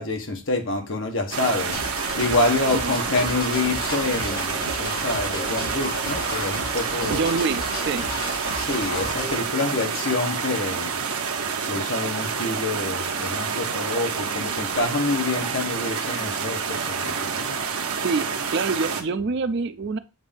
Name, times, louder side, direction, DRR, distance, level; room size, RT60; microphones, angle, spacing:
voice 1, 0.0-7.2 8.5-11.0 11.7-17.6, left 2 dB, 60° left, 1.2 m, -27 dB
sound 1, 1.3-19.0, right 6 dB, 80° right, 0.9 m, -28 dB
sound 2, 1.7-9.4, left 1 dB, 40° left, 1.7 m, -33 dB
voice 2, 7.1-8.1 18.0-20.0, right 4 dB, 50° right, 0.4 m, -26 dB
7.9 x 2.7 x 5.1 m
head